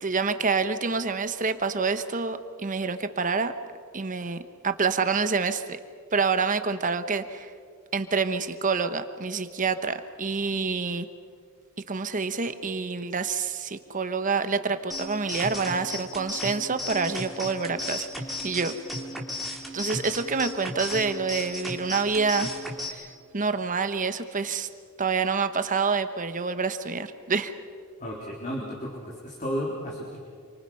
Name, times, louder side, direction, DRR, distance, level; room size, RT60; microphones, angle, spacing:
voice 1, 0.0-3.5 3.9-5.6 6.1-7.5 7.9-11.1 11.9-18.1 18.4-18.7 19.7-22.6 22.9-24.7 25.0-27.5, right 4 dB, 35° right, 10 dB, 1.0 m, -27 dB
sound 1, 14.9-22.9, left 1 dB, ahead, 3.0 m, -35 dB
voice 2, 28.0-30.2, equal, 35° left, -4 dB, 3.7 m, -33 dB
27.5 x 25.0 x 5.6 m, 2.1 s
head